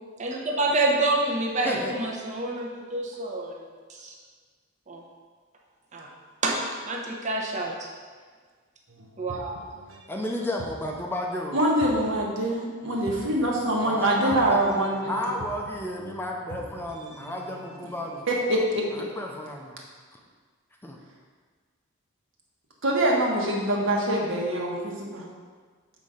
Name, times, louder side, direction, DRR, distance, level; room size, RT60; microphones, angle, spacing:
voice 1, 0.2-4.1 4.9-5.0 5.9-6.1 6.4-6.5 6.9-7.9 9.2-9.6, right 2 dB, 35° right, -1 dB, 1.0 m, -28 dB
voice 2, 1.6-2.0 10.1-11.6 13.8-14.6 15.0-18.3 18.9-19.8 20.8-21.0, left 1 dB, 10° left, 0 dB, 0.6 m, -32 dB
sound 1, 8.9-10.2 10.6-11.2 11.8-12.4 13.1-18.2, right 2 dB, 90° right, 0.9 m, -45 dB
voice 3, 11.5-15.2 18.3-18.9 22.8-25.2, right 1 dB, 65° right, -2 dB, 1.4 m, -24 dB
7.4 x 4.2 x 5.0 m, 1.6 s
head